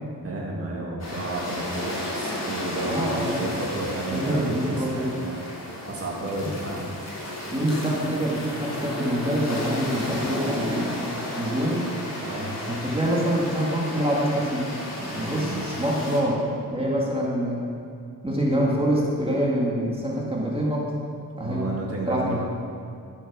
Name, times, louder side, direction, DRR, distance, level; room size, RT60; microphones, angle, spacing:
voice 1, 0.2-5.4 5.8-6.9 12.2-12.6 15.4-15.7 21.4-22.4, right 2 dB, 40° right, -3 dB, 1.9 m, -32 dB
sound 1, 1.0-16.2, left 1 dB, 45° left, 3.5 m, -33 dB
voice 2, 2.8-3.5 4.1-5.1 7.5-11.0 11.3-11.8 12.7-16.4 16.7-17.6 18.2-20.9 21.4-21.6 22.1-22.4, equal, 15° right, -4 dB, 2.3 m, -25 dB
14.0 x 7.1 x 6.3 m, 2.3 s
wide cardioid pair, 120°, 36 cm